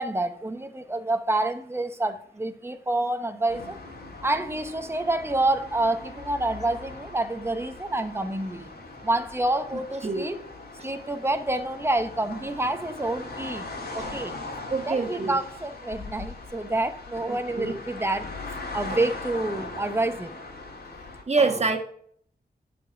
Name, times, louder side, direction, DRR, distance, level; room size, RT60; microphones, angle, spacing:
voice 1, 0.0-3.8 4.2-8.7 9.0-10.4 10.8-14.3 14.9-18.3 18.7-20.4, right 2 dB, 15° right, 8 dB, 0.9 m, -28 dB
sound 1, 3.5-21.2, left 3 dB, 85° left, 2.5 m, -40 dB
voice 2, 14.7-15.3 17.3-17.7 18.9-19.0 21.3-21.8, right 4 dB, 45° right, 5 dB, 1.4 m, -26 dB
11.0 x 5.2 x 5.8 m, 0.63 s
wide cardioid pair, 105°, 16 cm